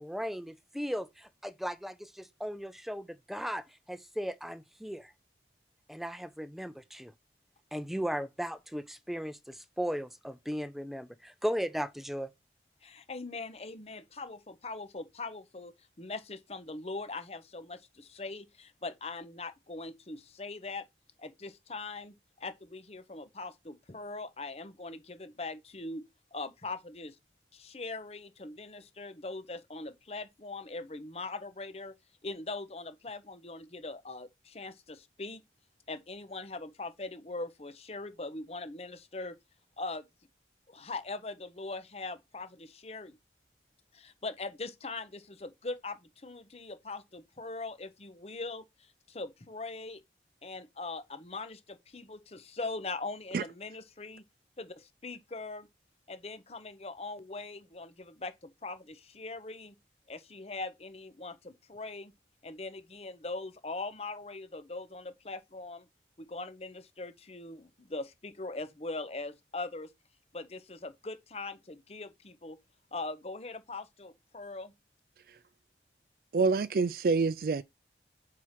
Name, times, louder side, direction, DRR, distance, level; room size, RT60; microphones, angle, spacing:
voice 1, 0.0-5.1 5.9-7.1 7.7-12.3, equal, ahead, 0.5 m, -36 dB
voice 2, 12.8-20.8 21.2-26.0 26.3-27.2 27.5-31.9 32.2-35.4 35.9-39.4 39.8-40.1 40.7-43.2 43.9-50.0 50.4-54.2 54.6-55.7 56.1-59.8 60.1-62.1 62.4-65.8 66.2-69.9 70.3-72.6 72.9-74.7, left 3 dB, 35° left, 0.8 m, -41 dB
voice 3, 76.3-77.6, right 4 dB, 55° right, 0.4 m, -26 dB
4.7 x 4.6 x 5.7 m
head